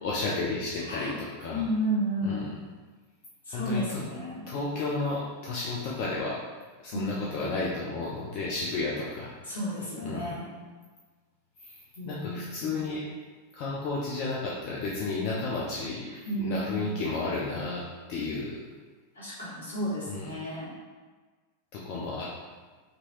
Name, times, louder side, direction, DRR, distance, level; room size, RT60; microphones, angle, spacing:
voice 1, 0.0-1.6 2.2-2.4 3.5-4.0 4.5-6.4 6.8-9.3 10.0-10.3 11.6-11.7 12.1-13.0 13.5-16.1 16.4-17.8 18.1-18.6 20.1-20.3 21.7-22.3, left 3 dB, 45° left, -5 dB, 0.4 m, -32 dB
voice 2, 0.9-1.2 1.5-2.5 3.4-4.4 6.9-7.6 9.4-10.5 12.0-12.8 16.3-17.0 19.1-20.7, equal, 70° left, -8 dB, 1.1 m, -32 dB
2.8 x 2.6 x 3.0 m, 1.4 s
figure-of-eight pair, 90°, 0 cm